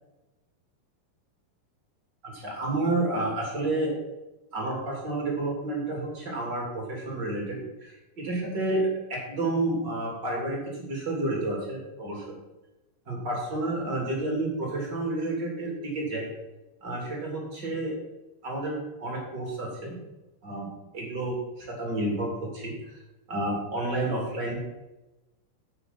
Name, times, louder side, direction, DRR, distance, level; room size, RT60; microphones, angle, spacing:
voice 1, 2.2-3.9 4.5-12.4 13.1-16.3 16.8-18.0 18.4-20.0 20.4-20.7 20.9-23.0 23.3-24.8, right 2 dB, 30° right, -1 dB, 3.2 m, -30 dB
8.3 x 8.3 x 5.8 m, 1.0 s
omnidirectional pair, 3.9 m